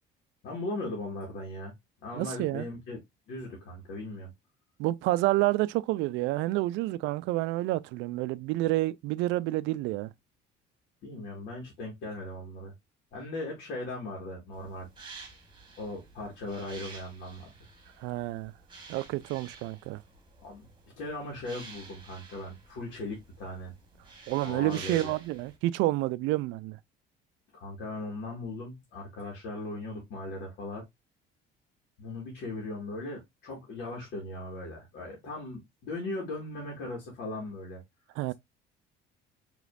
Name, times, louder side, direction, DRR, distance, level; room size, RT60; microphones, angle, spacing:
voice 1, 0.4-1.7 2.0-3.0 3.3-4.3 11.0-12.7 13.1-14.9 15.8-17.5 20.4-20.7 21.0-23.7 24.4-25.2 27.5-30.8 32.0-37.8, left 2 dB, 70° left, 1.8 m, -38 dB
voice 2, 2.2-2.7 4.8-10.1 18.0-18.5 18.9-20.0 24.3-26.8 38.2-38.3, right 17 dB, 80° right, 0.4 m, -29 dB
sound 1, 14.5-25.6, right 3 dB, 25° right, 1.4 m, -50 dB
5.0 x 3.1 x 2.4 m
cardioid pair, 120°, 19 cm